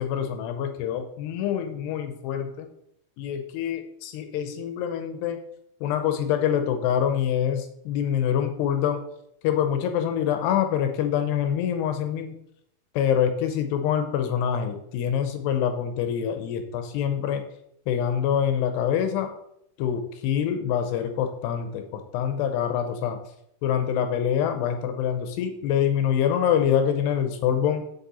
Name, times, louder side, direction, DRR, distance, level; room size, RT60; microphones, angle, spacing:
voice 1, 0.0-2.7 3.2-5.4 5.8-9.0 9.4-12.3 13.0-17.4 17.9-19.3 19.8-23.2 23.6-27.8, left 9 dB, 80° left, 7 dB, 2.5 m, -25 dB
7.5 x 6.4 x 4.2 m, 0.75 s
omnidirectional pair, 5.4 m